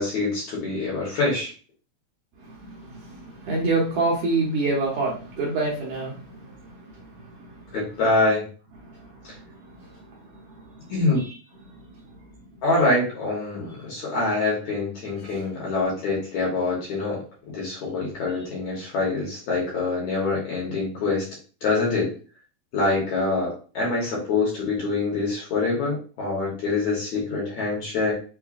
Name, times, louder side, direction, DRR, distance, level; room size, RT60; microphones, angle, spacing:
voice 1, 0.0-1.5 7.7-8.5 9.2-9.3 10.9-11.3 12.6-17.2 17.5-21.3 21.6-22.1 22.7-28.1, left 3 dB, 65° left, -5 dB, 1.9 m, -25 dB
voice 2, 2.4-7.8 8.8-11.3 11.6-11.9, right 3 dB, 70° right, -4 dB, 1.9 m, -29 dB
5.8 x 2.1 x 2.4 m, 0.37 s
omnidirectional pair, 4.1 m